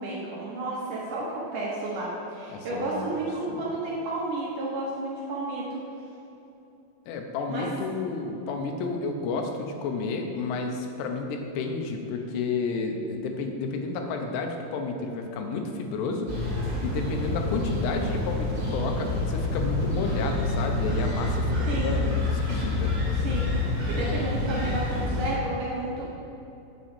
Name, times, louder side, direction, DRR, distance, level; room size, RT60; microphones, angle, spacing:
voice 1, 0.0-5.8 7.5-7.7 21.6-21.9 23.1-26.1, right 2 dB, 75° right, -5 dB, 1.9 m, -32 dB
voice 2, 2.5-3.1 3.5-3.7 7.1-16.3 16.8-22.9, left 4 dB, 80° left, 3 dB, 2.8 m, -31 dB
sound 1, 16.3-25.3, left 2 dB, 40° right, 1.7 m, -27 dB
7.6 x 5.0 x 6.9 m, 2.9 s
omnidirectional pair, 5.0 m